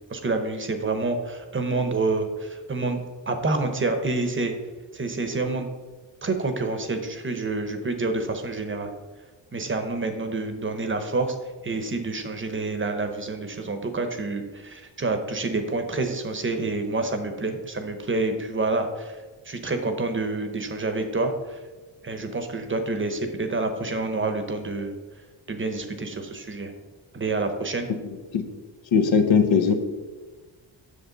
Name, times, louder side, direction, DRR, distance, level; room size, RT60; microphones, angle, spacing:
voice 1, 0.1-3.0 3.3-4.5 4.9-5.7 6.2-8.9 9.5-11.4 11.6-19.2 19.4-21.6 22.0-25.0 25.5-26.7 27.1-27.9, right 3 dB, 25° right, 6 dB, 0.8 m, -28 dB
voice 2, 28.9-29.9, left 6 dB, 90° left, 6 dB, 1.0 m, -19 dB
8.2 x 6.5 x 3.9 m, 1.3 s
wide cardioid pair, 130°, 45 cm